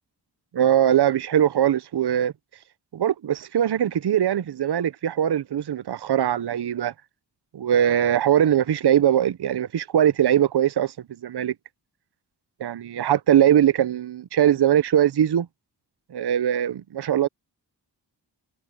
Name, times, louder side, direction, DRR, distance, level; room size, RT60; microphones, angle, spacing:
voice 1, 0.5-2.3 2.9-6.9 7.5-10.9 11.2-11.5 12.6-15.5 16.1-17.3, right 10 dB, 65° right, 0.6 m, -21 dB
wide cardioid pair, 80°, 42 cm